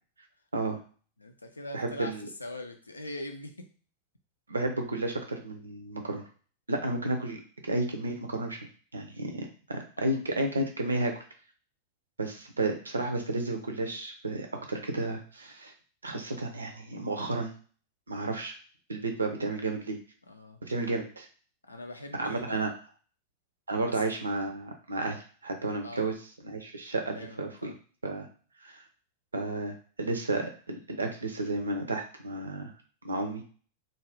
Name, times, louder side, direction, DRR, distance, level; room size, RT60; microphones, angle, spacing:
voice 1, 1.2-2.1 2.4-3.7 10.0-10.2 20.3-20.6 21.7-22.7 23.9-24.0 25.8-26.0 27.2-27.8, left 1 dB, 80° left, 5 dB, 0.4 m, -41 dB
voice 2, 1.7-2.3 4.5-6.2 6.7-8.6 8.9-11.1 12.2-15.7 16.0-17.5 18.1-18.5 18.9-20.0 20.6-21.3 22.1-22.7 23.7-26.2 26.4-27.7 28.0-28.3 28.6-28.8 29.3-32.7 33.0-33.5, right 2 dB, 75° right, 4 dB, 0.6 m, -32 dB
2.5 x 2.3 x 3.4 m, 0.41 s
figure-of-eight pair, 90°, 0 cm